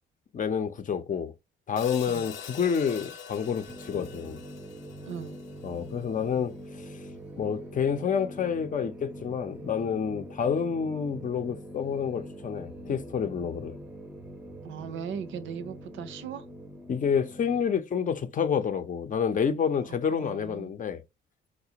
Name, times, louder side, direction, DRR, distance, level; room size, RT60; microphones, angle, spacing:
voice 1, 0.3-1.3 1.7-4.4 5.6-7.0 7.4-13.8 16.9-21.0, left 7 dB, 40° left, 0.6 m, -29 dB
Hi-hat, 1.8-6.0, left 8 dB, 80° left, 0.6 m, -44 dB
sound 1, 3.7-17.6, equal, 5° right, 0.6 m, -44 dB
voice 2, 5.1-5.4 14.6-16.4 19.9-20.7, right 7 dB, 75° right, 0.6 m, -38 dB
4.9 x 2.1 x 2.8 m
cardioid pair, 90°, 20 cm